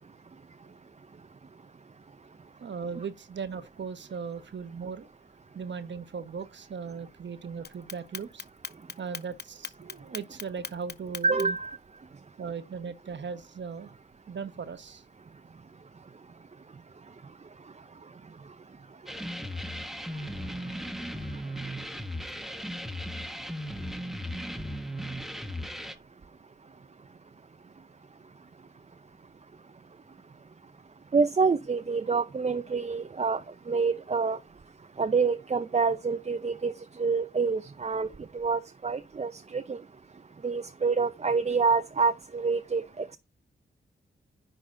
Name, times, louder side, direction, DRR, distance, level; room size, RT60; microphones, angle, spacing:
voice 1, 2.6-5.1 5.5-8.4 9.0-11.6 12.4-13.9 14.3-15.0, right 6 dB, 60° right, 1.1 m, -38 dB
Clock, 7.6-11.7, left 6 dB, 50° left, 0.8 m, -39 dB
voice 2, 11.2-11.8 31.1-34.4 35.0-36.7 37.0-38.1 38.3-39.8 40.4-43.2, right 4 dB, 30° right, 0.7 m, -27 dB
sound 1, 19.1-25.9, equal, ahead, 1.2 m, -36 dB
10.0 x 4.0 x 4.0 m
cardioid pair, 55°, 21 cm